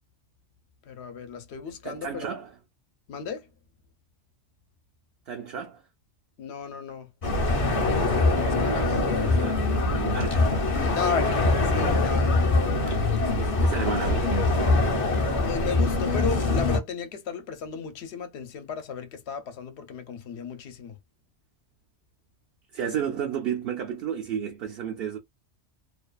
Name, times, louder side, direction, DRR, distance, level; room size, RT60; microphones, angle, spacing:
voice 1, 0.9-2.3 3.1-3.5 6.4-7.1 8.4-8.8 10.9-12.3 15.2-21.0, left 5 dB, 70° left, 0.9 m, -34 dB
voice 2, 1.8-2.5 5.3-5.8 8.6-10.5 13.3-14.4 22.7-25.2, right 8 dB, 65° right, 0.7 m, -33 dB
sound 1, 7.2-16.8, left 2 dB, 40° left, 0.5 m, -23 dB
2.5 x 2.3 x 2.3 m
omnidirectional pair, 1.2 m